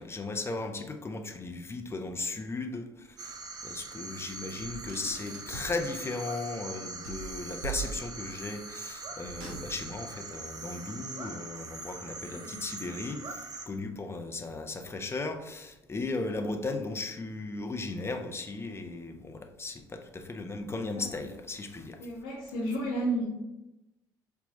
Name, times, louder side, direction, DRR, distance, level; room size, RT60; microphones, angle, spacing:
voice 1, 0.0-22.0, left 3 dB, 25° left, 5 dB, 0.5 m, -36 dB
sound 1, 3.2-13.7, right 3 dB, 35° right, 0.5 m, -42 dB
Car, 4.6-5.8 7.0-8.4 9.2-10.0, right 5 dB, 90° right, 0.6 m, -41 dB
voice 2, 12.3-12.6 16.1-16.3 20.9-21.1 22.0-23.2, right 1 dB, 85° left, -9 dB, 0.8 m, -33 dB
4.1 x 2.2 x 2.7 m, 0.95 s
hypercardioid pair, 50°, 11 cm